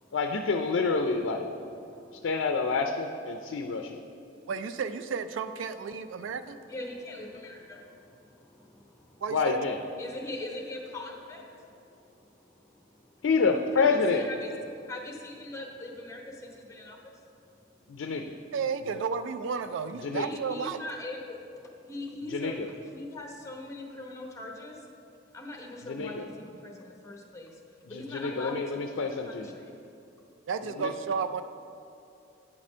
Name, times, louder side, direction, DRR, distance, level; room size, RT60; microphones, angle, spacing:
voice 1, 0.1-1.5 2.2-4.0 9.3-9.8 13.2-14.3 17.9-18.4 20.0-20.2 22.3-22.7 25.8-26.3 27.9-29.6 30.6-30.9, left 4 dB, 85° left, 5 dB, 0.4 m, -28 dB
voice 2, 1.8-2.3 6.7-9.2 10.0-12.1 12.7-13.0 13.8-13.9 14.2-14.5 14.9-17.1 20.2-21.4 21.9-24.8 25.3-27.5 27.9-29.0 29.3-29.7, left 2 dB, 15° left, 1 dB, 0.9 m, -41 dB
voice 3, 4.5-6.6 9.2-9.7 18.5-20.8 30.5-31.4, right 5 dB, 75° right, 11 dB, 0.3 m, -32 dB
8.6 x 4.2 x 6.1 m, 2.7 s
head